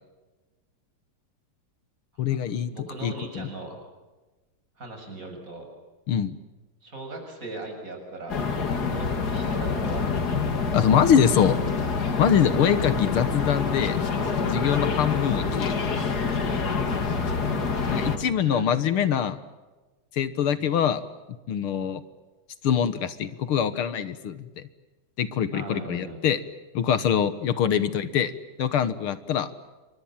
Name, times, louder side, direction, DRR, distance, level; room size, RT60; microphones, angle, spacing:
voice 1, 2.2-2.7 3.0-3.5 6.1-6.4 10.7-11.6 12.2-14.0 14.4-15.7 17.9-19.4 20.1-21.0 21.5-22.0 22.6-24.5 25.2-26.4 26.7-28.3 28.6-29.5, left 8 dB, 75° left, 13 dB, 2.1 m, -23 dB
voice 2, 2.7-3.8 4.8-5.7 6.8-8.4 8.9-10.7 12.6-12.8 13.7-13.9 14.9-15.6 16.3-17.2 17.8-18.7 20.5-20.8 25.5-26.2 27.7-27.8, right 2 dB, 35° right, 3 dB, 7.1 m, -40 dB
sound 1, 8.3-18.2, left 5 dB, 45° left, 2.8 m, -26 dB
29.0 x 24.5 x 7.4 m, 1.2 s
omnidirectional pair, 2.4 m